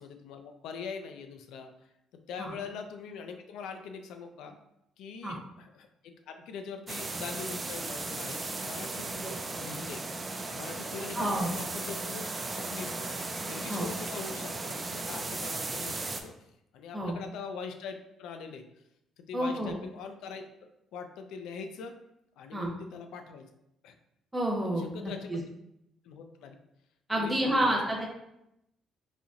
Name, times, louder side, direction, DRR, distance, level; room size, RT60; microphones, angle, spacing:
voice 1, 0.0-1.7 2.3-4.6 5.0-9.1 9.6-10.0 10.5-16.3 16.7-18.7 19.2-20.4 20.9-22.0 22.4-23.5 23.8-24.0 24.8-25.5 26.0-26.6 27.1-27.8, left 5 dB, 85° left, 6 dB, 0.4 m, -42 dB
sound 1, 6.9-16.2, right 3 dB, 25° right, 0.4 m, -36 dB
voice 2, 11.2-11.5 13.7-13.8 16.9-17.1 19.3-19.7 22.5-22.7 24.3-25.4 27.1-28.1, right 1 dB, 10° right, -3 dB, 0.8 m, -29 dB
4.1 x 2.9 x 2.4 m, 0.82 s
cardioid pair, 115°, 0 cm